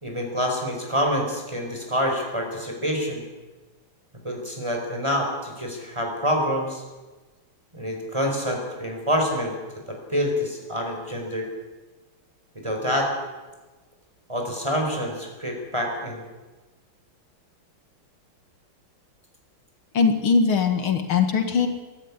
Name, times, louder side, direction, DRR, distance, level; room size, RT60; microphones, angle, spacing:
voice 1, 0.0-3.2 4.2-6.8 7.7-9.5 9.9-11.5 12.6-13.1 14.3-16.2, equal, 15° right, 2 dB, 4.7 m, -27 dB
voice 2, 19.9-21.7, left 5 dB, 80° left, 6 dB, 2.7 m, -21 dB
22.5 x 14.0 x 9.8 m, 1.2 s
omnidirectional pair, 2.3 m